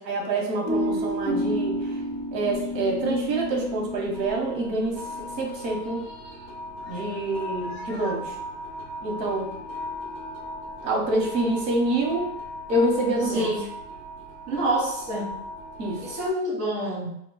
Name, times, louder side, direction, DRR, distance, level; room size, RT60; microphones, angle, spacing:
voice 1, 0.1-2.0 2.3-6.1 6.9-8.4 9.0-9.5 10.8-12.3 12.7-13.5 15.8-16.0, right 2 dB, 90° right, 0 dB, 1.0 m, -26 dB
sound 1, 0.6-16.3, left 1 dB, 25° left, 0.8 m, -34 dB
voice 2, 13.3-13.6 14.5-15.4 16.0-17.1, right 1 dB, 30° right, -6 dB, 0.9 m, -27 dB
2.3 x 2.1 x 3.8 m, 0.74 s
supercardioid pair, 170°, 48 cm